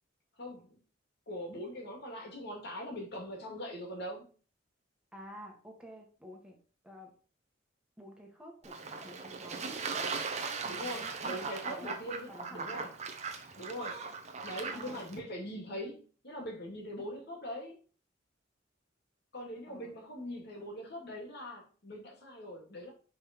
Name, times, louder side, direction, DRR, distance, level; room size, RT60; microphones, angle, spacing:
voice 1, 0.4-0.8 1.3-4.3 10.6-12.9 13.6-14.0 14.4-17.8 19.3-22.9, equal, 60° left, 0 dB, 2.5 m, -42 dB
voice 2, 5.1-6.6 6.8-7.1 8.0-12.0 12.3-12.9 14.6-15.1 19.7-19.9, equal, 5° right, 0 dB, 1.7 m, -51 dB
Fowl / Bird / Water, 8.6-15.2, right 5 dB, 35° right, 0.9 m, -39 dB
5.3 x 4.4 x 5.2 m, 0.39 s
head